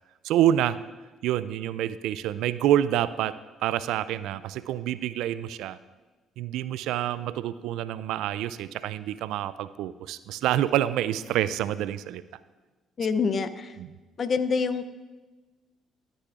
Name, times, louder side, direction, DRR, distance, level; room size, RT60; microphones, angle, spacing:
voice 1, 0.2-0.8 1.2-5.8 6.4-12.2 13.8-14.0, right 12 dB, 75° right, 15 dB, 0.3 m, -27 dB
voice 2, 13.0-13.8 14.2-14.9, left 5 dB, 50° left, 12 dB, 0.6 m, -26 dB
13.0 x 9.8 x 2.5 m, 1.2 s
hypercardioid pair, 60°, 0 cm